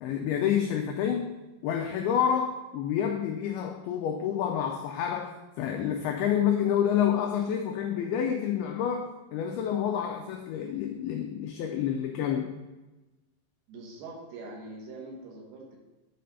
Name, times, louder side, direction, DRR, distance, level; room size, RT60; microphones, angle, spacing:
voice 1, 0.0-1.3 1.6-12.6, left 9 dB, 85° left, 3 dB, 2.2 m, -28 dB
voice 2, 13.7-15.8, right 2 dB, 70° right, -1 dB, 3.0 m, -43 dB
8.9 x 4.2 x 5.4 m, 1.1 s
omnidirectional pair, 5.1 m